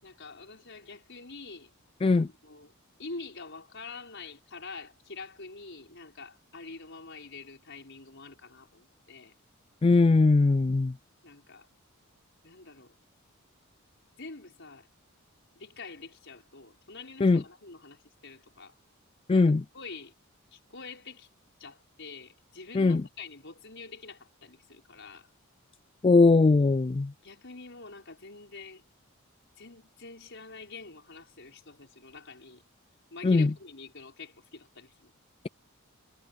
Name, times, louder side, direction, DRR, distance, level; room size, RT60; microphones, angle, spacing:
voice 1, 0.0-1.7 2.0-2.7 3.0-9.3 11.2-11.7 12.4-12.9 14.2-14.9 15.5-18.7 19.3-20.1 20.5-21.3 21.6-25.3 27.2-28.8 29.6-32.6 33.1-35.1, left 4 dB, 55° left, 6.0 m, -46 dB
voice 2, 9.8-10.9 17.2-17.4 19.3-19.6 22.7-23.0 26.0-27.1 33.2-33.5, left 3 dB, 25° left, 0.3 m, -20 dB
head